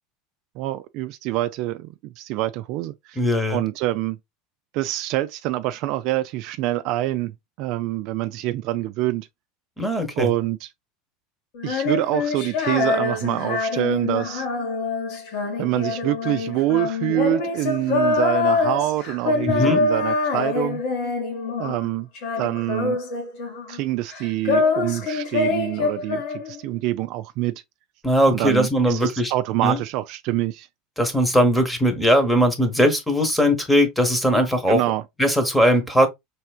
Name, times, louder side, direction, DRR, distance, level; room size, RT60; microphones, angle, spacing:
voice 1, 0.6-3.2 3.5-4.2 4.7-9.3 10.2-10.7 11.6-14.5 15.6-20.8 21.6-22.1 22.4-23.0 23.7-27.6 28.3-30.7 34.7-35.0, right 15 dB, 60° right, 0.3 m, -26 dB
voice 2, 3.2-3.6 9.8-10.3 19.5-19.9 28.0-29.3 29.6-29.8 31.0-34.8 35.2-36.1, equal, 5° left, 1.1 m, -19 dB
Female singing, 11.5-21.9 22.1-23.8 24.1-26.8, left 4 dB, 65° left, 1.6 m, -25 dB
4.3 x 3.4 x 2.4 m
supercardioid pair, 110°, 0 cm